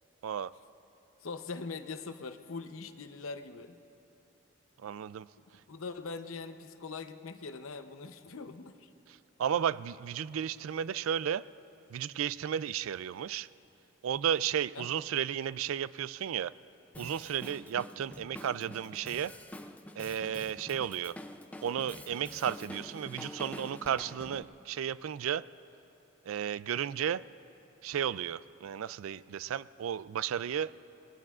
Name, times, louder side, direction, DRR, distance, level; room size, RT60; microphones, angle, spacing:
voice 1, 1.2-3.8 5.7-8.9 14.7-14.9, left 4 dB, 80° left, 8 dB, 0.7 m, -42 dB
voice 2, 4.8-5.3 9.4-11.4 11.9-13.5 14.0-16.5 17.0-19.3 20.0-21.2 21.6-25.4 26.3-27.2 27.8-30.7, right 9 dB, 80° right, 17 dB, 0.3 m, -33 dB
Drum kit, 16.9-24.4, left 1 dB, 5° left, 0.4 m, -47 dB
27.0 x 20.0 x 2.4 m, 2.8 s
head